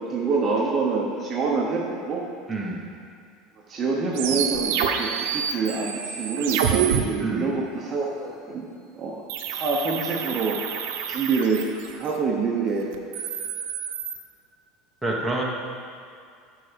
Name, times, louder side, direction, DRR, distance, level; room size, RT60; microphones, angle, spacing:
voice 1, 0.1-2.3 3.7-8.7 9.0-9.2 9.5-11.6 12.0-12.9, right 4 dB, 30° right, -2 dB, 1.0 m, -26 dB
voice 2, 2.5-2.8 7.2-7.5 15.0-15.4, right 2 dB, ahead, -5 dB, 1.2 m, -27 dB
sound 1, 4.1-7.0 9.3-12.1 12.9-14.2, right 8 dB, 80° right, 0.8 m, -27 dB
11.5 x 4.8 x 5.2 m, 2.3 s
cardioid pair, 155°, 0 cm